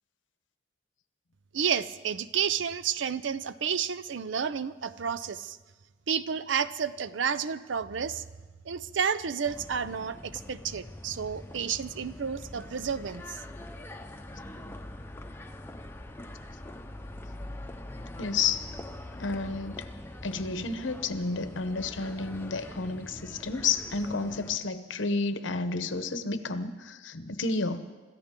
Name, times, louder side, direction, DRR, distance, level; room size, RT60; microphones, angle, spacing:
voice 1, 1.5-5.6 6.1-8.2 8.7-13.2, right 7 dB, 75° right, 15 dB, 0.6 m, -31 dB
sound 1, 9.5-24.6, left 1 dB, 10° left, 0.7 m, -43 dB
voice 2, 18.2-18.7 19.2-19.9 20.2-27.9, left 4 dB, 85° left, 10 dB, 0.9 m, -31 dB
26.5 x 14.0 x 3.8 m, 1.3 s
head